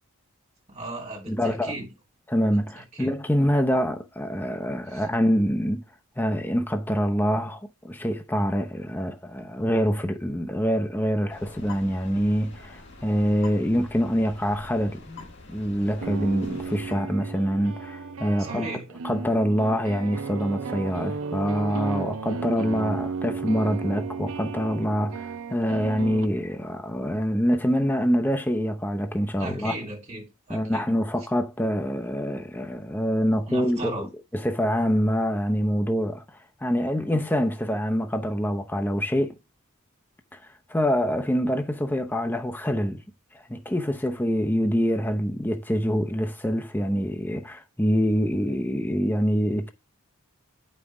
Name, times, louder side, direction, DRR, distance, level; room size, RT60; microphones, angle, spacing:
voice 1, 0.7-1.8 2.7-3.1 4.9-5.1 18.4-18.9 29.4-30.9 31.2-31.3 33.3-34.1, right 2 dB, 30° right, 3.3 m, -37 dB
voice 2, 1.3-1.7 2.3-5.8 6.2-15.2 15.5-18.7 19.0-29.7 30.5-34.0 34.3-39.4 40.7-43.0 43.5-49.7, equal, 10° left, 0.6 m, -25 dB
sound 1, 11.3-16.9, left 3 dB, 50° left, 1.8 m, -45 dB
sound 2, 15.8-26.3, right 5 dB, 70° right, 0.5 m, -34 dB
8.2 x 5.4 x 4.8 m
head